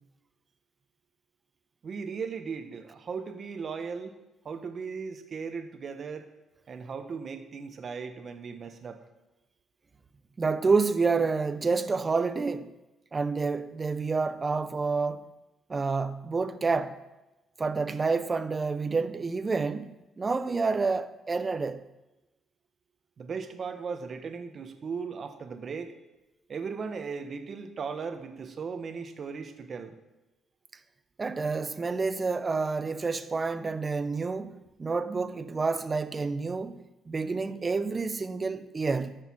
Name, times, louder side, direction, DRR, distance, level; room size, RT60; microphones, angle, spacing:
voice 1, 1.8-4.2 4.4-6.3 6.7-9.0 23.2-25.9 26.5-29.9, right 5 dB, 45° right, 1.3 m, -37 dB
voice 2, 10.4-12.7 13.1-15.2 15.7-17.0 17.6-21.8 31.2-39.2, right 4 dB, 30° right, 0.7 m, -29 dB
13.0 x 6.8 x 6.3 m
cardioid pair, 95°, 0 cm